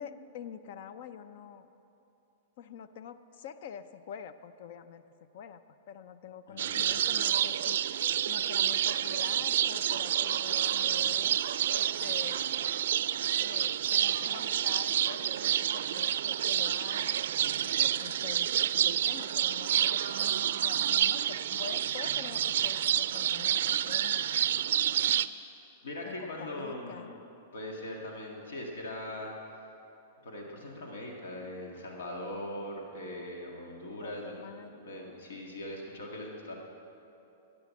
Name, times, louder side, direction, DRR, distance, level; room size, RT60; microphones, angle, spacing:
voice 1, 0.0-1.7 2.6-5.0 5.3-5.6 5.9-7.8 8.3-11.4 11.7-12.5 13.4-17.2 17.6-24.3 26.0-27.2 34.0-34.8, left 8 dB, 60° left, 12 dB, 0.6 m, -46 dB
voice 2, 6.5-7.0 10.9-11.1 25.8-27.1 27.5-29.3 30.2-34.4 34.8-36.5, left 1 dB, 85° left, 0 dB, 2.0 m, -40 dB
sound 1, 6.6-25.3, right 10 dB, 75° right, 0.3 m, -29 dB
12.0 x 10.0 x 7.2 m, 2.9 s
hypercardioid pair, 140°, 0 cm